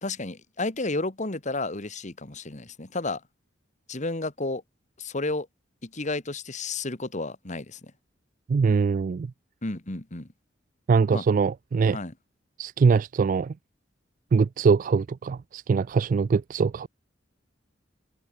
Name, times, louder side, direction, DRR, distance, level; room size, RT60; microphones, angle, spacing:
voice 1, 0.0-3.2 3.9-4.6 5.0-5.5 5.8-7.8 9.6-10.3 11.1-11.2 11.9-12.1, left 2 dB, 40° left, 1.9 m, -32 dB
voice 2, 8.5-9.3 10.9-12.0 12.6-13.5 14.3-16.9, right 5 dB, 45° right, 0.3 m, -22 dB
open air
head